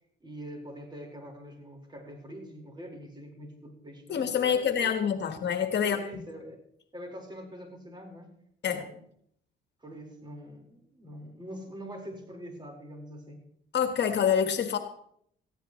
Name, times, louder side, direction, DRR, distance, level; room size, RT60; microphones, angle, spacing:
voice 1, 0.2-4.9 5.8-6.6 6.9-8.3 8.7-9.0 9.8-13.5, equal, 25° right, 1 dB, 4.7 m, -44 dB
voice 2, 4.1-6.0 8.6-8.8 13.7-14.8, left 8 dB, 60° left, 7 dB, 1.5 m, -26 dB
18.5 x 14.5 x 3.2 m, 0.69 s
cardioid pair, 90°, 20 cm